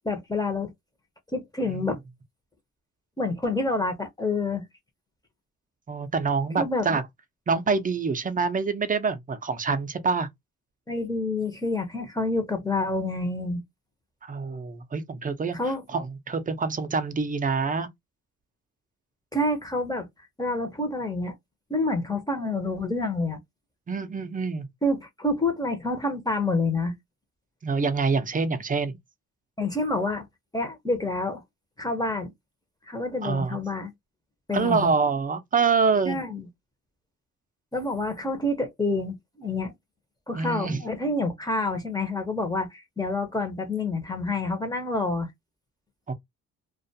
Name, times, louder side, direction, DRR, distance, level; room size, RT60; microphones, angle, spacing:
voice 1, 0.0-0.7 1.3-2.0 3.2-4.7 6.6-7.0 10.9-13.6 15.5-15.8 19.3-20.1 20.4-21.3 21.7-23.4 24.8-27.0 29.6-30.3 30.5-31.4 31.8-32.3 32.9-33.9 34.5-34.9 36.0-36.5 37.7-39.7 40.3-45.3, left 2 dB, 15° left, 0.7 m, -28 dB
voice 2, 5.9-7.0 7.5-10.3 14.3-15.6 15.9-17.9 23.9-24.7 27.6-28.9 33.2-33.6 34.5-36.2 40.3-40.8 46.1-46.2, right 5 dB, 25° right, 0.5 m, -26 dB
2.4 x 2.2 x 2.6 m
cardioid pair, 90°, 30 cm